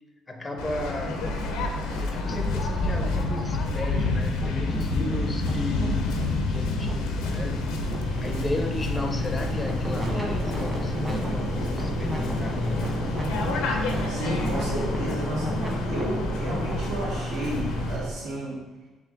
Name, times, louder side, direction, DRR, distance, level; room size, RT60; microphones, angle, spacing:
voice 1, 0.3-1.4 2.0-6.1 6.5-7.9 8.2-13.1, left 1 dB, 25° left, 5 dB, 0.5 m, -34 dB
Waves surf, 0.6-18.0, left 3 dB, 85° left, 0.5 m, -29 dB
sound 1, 1.0-17.2, equal, 30° right, 1.2 m, -34 dB
sound 2, 8.0-18.1, right 2 dB, 50° right, 0.9 m, -34 dB
voice 2, 14.1-15.5 15.9-18.6, right 1 dB, 75° right, -7 dB, 1.5 m, -32 dB
3.3 x 3.1 x 3.7 m, 1.2 s
supercardioid pair, 70°, 0 cm